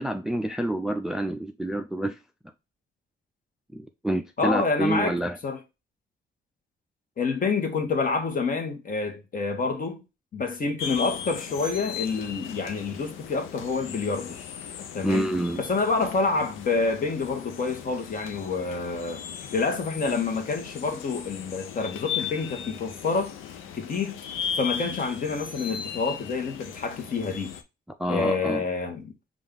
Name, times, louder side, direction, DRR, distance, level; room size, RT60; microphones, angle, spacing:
voice 1, 0.0-2.2 3.7-5.4 15.0-15.6 28.0-28.6, right 1 dB, ahead, 0.4 m, -27 dB
voice 2, 4.4-5.2 5.4-5.6 7.2-10.0 10.3-14.4 14.9-19.2 19.5-23.3 23.8-24.2 24.6-27.5 28.1-29.1, left 4 dB, 45° left, 1.2 m, -28 dB
sound 1, 10.8-27.6, left 8 dB, 85° left, 0.6 m, -37 dB
5.2 x 2.5 x 3.7 m
cardioid pair, 90°, 20 cm